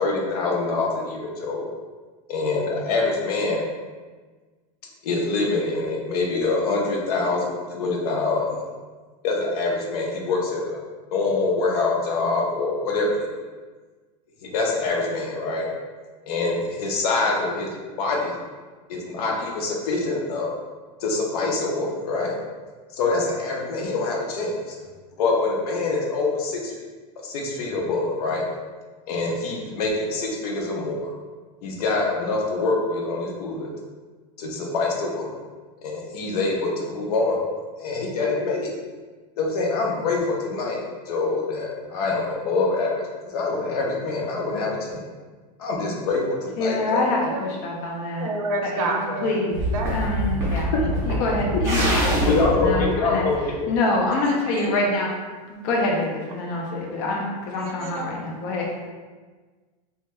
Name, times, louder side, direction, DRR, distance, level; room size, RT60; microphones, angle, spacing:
voice 1, 0.0-1.7 2.3-3.7 5.0-8.7 9.2-10.8 11.1-13.4 14.4-15.7 16.3-18.4 18.9-20.5 21.0-22.4 22.9-24.8 25.2-26.7 27.2-28.4 29.1-31.1 31.6-33.7 34.4-35.3 35.8-37.4 37.8-38.7 39.4-45.0 45.6-47.0 52.3-53.7 54.6-54.7, left 3 dB, 75° left, -1 dB, 0.7 m, -25 dB
voice 2, 46.6-48.3 48.7-49.6 49.9-50.7 51.1-53.3 53.7-55.1 55.5-58.7, left 2 dB, 35° left, -1 dB, 0.4 m, -26 dB
voice 3, 48.2-49.4 49.7-49.9 50.7-51.4 52.2-52.3 54.2-54.7 56.5-56.6 57.6-58.1, right 2 dB, 60° right, 1 dB, 0.5 m, -30 dB
sound 1, 49.5-53.8, equal, 15° right, 0.6 m, -25 dB
2.6 x 2.2 x 3.0 m, 1.4 s
supercardioid pair, 170°, 20 cm